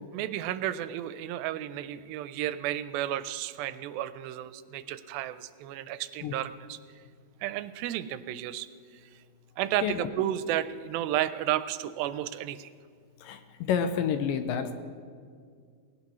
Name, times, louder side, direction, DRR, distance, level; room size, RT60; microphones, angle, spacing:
voice 1, 0.1-6.8 7.4-8.7 9.6-12.7, right 12 dB, 85° right, 13 dB, 2.3 m, -32 dB
voice 2, 13.2-14.8, left 7 dB, 80° left, 8 dB, 2.2 m, -29 dB
19.5 x 17.0 x 3.1 m, 2.1 s
omnidirectional pair, 4.2 m